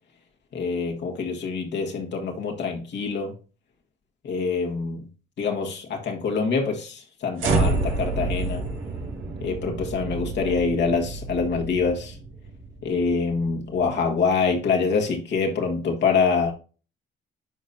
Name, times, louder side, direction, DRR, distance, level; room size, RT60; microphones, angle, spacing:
voice 1, 0.5-3.3 4.2-5.1 5.4-8.6 9.4-12.2 12.8-16.5, left 5 dB, 60° left, 1.6 m, -25 dB
sound 1, 7.4-13.7, right 3 dB, 90° right, 2.0 m, -29 dB
10.5 x 4.0 x 2.6 m
cardioid pair, 90°, 20 cm